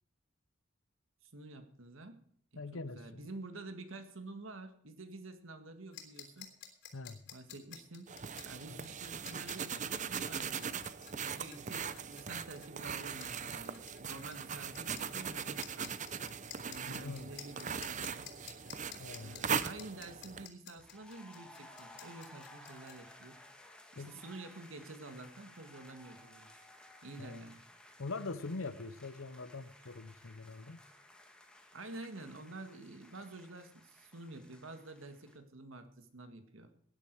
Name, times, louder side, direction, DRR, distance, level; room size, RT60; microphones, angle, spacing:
voice 1, 1.2-2.2 2.7-6.5 7.3-10.7 11.1-16.0 16.6-18.3 19.2-23.4 23.9-26.5 27.0-27.6 31.7-36.7, right 2 dB, 85° right, 8 dB, 1.9 m, -49 dB
voice 2, 2.6-3.3 6.9-7.2 8.7-8.9 16.9-17.3 19.0-19.4 24.0-24.2 27.2-27.4 28.0-30.8, left 3 dB, 85° left, 14 dB, 0.9 m, -43 dB
sound 1, 5.9-22.9, left 11 dB, 60° left, 3.3 m, -52 dB
sound 2, 8.1-20.5, right 7 dB, 40° right, 0.7 m, -40 dB
sound 3, 20.8-35.4, left 1 dB, 5° left, 1.8 m, -57 dB
17.5 x 10.5 x 4.7 m, 0.63 s
head